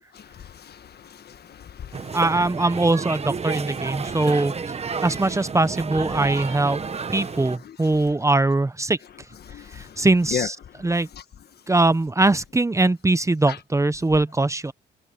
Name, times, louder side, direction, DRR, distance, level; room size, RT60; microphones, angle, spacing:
voice 1, 0.1-2.2 4.0-4.3 4.9-5.1 7.2-7.3 7.6-8.2 9.4-10.9 11.1-11.2 13.5-13.6, left 9 dB, 55° left, 1.5 m, -37 dB
sound 1, 1.9-7.6, right 5 dB, 30° right, 1.2 m, -31 dB
voice 2, 2.1-4.5 5.0-6.8 7.1-9.0 9.7-10.6 10.8-11.1 11.7-14.7, right 2 dB, 15° right, 0.9 m, -21 dB
cardioid pair, 90°, 20 cm